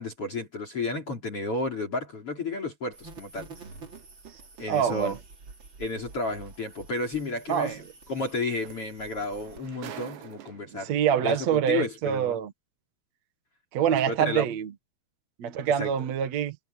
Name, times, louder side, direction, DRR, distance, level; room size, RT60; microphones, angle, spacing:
voice 1, 0.0-3.5 4.6-5.2 5.8-7.8 8.1-10.9 11.2-12.4 14.1-14.5 15.8-15.9, left 2 dB, 35° left, 4.4 m, -32 dB
sound 1, 2.9-9.7, right 4 dB, 35° right, 2.8 m, -48 dB
voice 2, 4.7-5.2 7.5-7.7 10.8-12.5 13.7-14.7 15.4-16.6, right 9 dB, 55° right, 2.2 m, -25 dB
sound 2, 6.5-6.6 8.3-8.4 8.6-10.9 11.8-11.9, right 10 dB, 90° right, 3.9 m, -44 dB
omnidirectional pair, 4.9 m